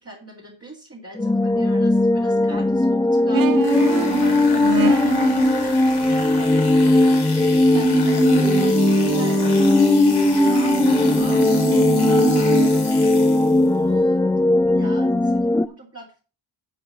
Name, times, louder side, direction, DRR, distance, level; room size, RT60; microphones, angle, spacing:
voice 1, 0.0-6.5 6.8-12.9 13.7-14.4 14.7-16.2, right 1 dB, 30° right, -3 dB, 2.5 m, -41 dB
sound 1, 1.2-15.7, left 2 dB, 10° left, 0.4 m, -18 dB
sound 2, 3.3-5.6 7.7-12.7, right 9 dB, 45° right, 0.6 m, -26 dB
sound 3, 3.6-13.8, left 5 dB, 55° left, 2.3 m, -34 dB
9.7 x 4.8 x 5.6 m, 0.35 s
cardioid pair, 70°, 48 cm